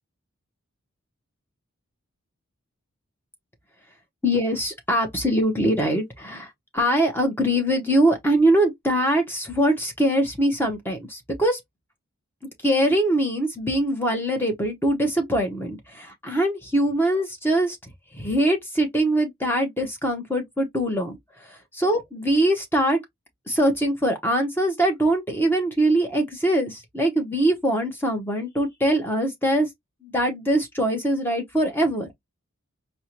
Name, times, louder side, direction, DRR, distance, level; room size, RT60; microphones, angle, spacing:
voice 1, 4.2-11.6 12.6-17.8 18.1-21.2 21.4-23.0 23.5-29.7 30.0-32.1, right 1 dB, 10° left, 0.9 m, -23 dB
4.4 x 2.2 x 2.8 m
head